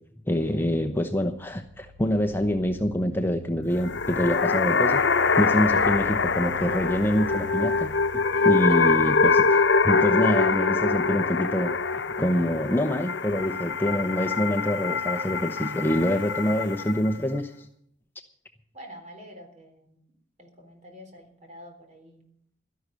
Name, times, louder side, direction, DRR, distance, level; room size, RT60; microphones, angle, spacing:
voice 1, 0.3-5.0 5.4-17.7, equal, 10° left, 6 dB, 0.8 m, -26 dB
sound 1, 1.3-13.9, left 1 dB, 75° right, 3.2 m, -46 dB
sound 2, 3.7-17.1, left 4 dB, 75° left, 0.9 m, -24 dB
voice 2, 8.3-9.3 18.7-20.0 20.4-22.3, right 1 dB, 40° right, 4 dB, 3.6 m, -45 dB
13.0 x 11.0 x 6.8 m, 0.67 s
head